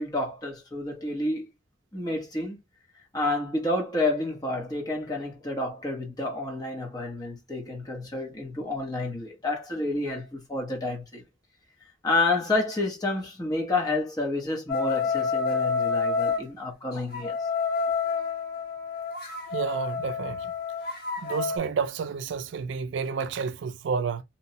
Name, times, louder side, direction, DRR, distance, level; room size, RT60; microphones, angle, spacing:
voice 1, 0.0-1.5 1.9-2.6 3.1-11.2 12.0-17.4, left 2 dB, 20° left, 0.7 m, -29 dB
sound 1, 14.7-16.4 17.1-21.6, left 5 dB, 50° left, 0.9 m, -28 dB
voice 2, 19.5-20.4 21.2-24.2, right 5 dB, 75° right, 0.3 m, -30 dB
2.9 x 2.0 x 2.7 m
head